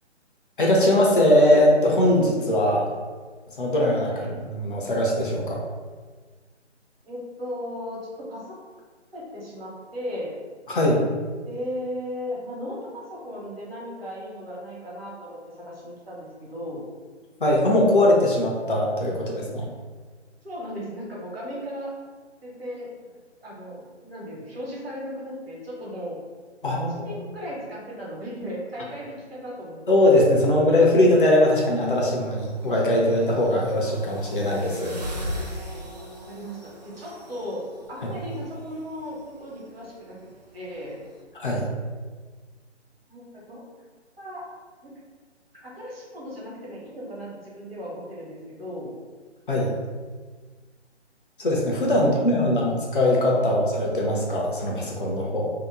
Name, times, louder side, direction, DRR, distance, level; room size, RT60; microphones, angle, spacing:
voice 1, 0.6-2.9 3.6-4.1 4.5-5.6 10.7-11.0 17.4-19.7 26.6-27.2 29.9-35.0 41.4-41.7 49.5-49.7 51.4-55.5, left 1 dB, 45° left, -2 dB, 0.6 m, -21 dB
voice 2, 7.0-8.0 8.3-8.5 9.1-10.4 11.4-16.9 20.4-21.9 22.4-22.9 23.4-26.2 26.7-29.9 36.3-40.2 40.5-41.0 43.1-43.6 44.2-44.5 44.8-45.0 45.5-48.9 51.9-52.6, equal, 55° right, -4 dB, 1.1 m, -36 dB
sound 1, 31.2-41.2, equal, 40° right, 0.4 m, -40 dB
2.8 x 2.0 x 3.7 m, 1.4 s
figure-of-eight pair, 150°, 35 cm